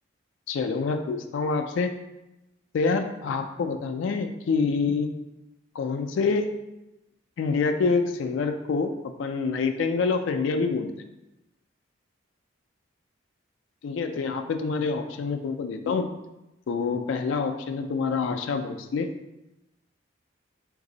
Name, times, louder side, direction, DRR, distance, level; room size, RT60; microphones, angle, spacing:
voice 1, 0.5-1.9 2.7-5.1 5.7-6.5 7.4-10.9 13.8-16.1 16.7-19.1, left 4 dB, 75° left, 6 dB, 0.3 m, -26 dB
4.0 x 2.6 x 3.8 m, 0.96 s
head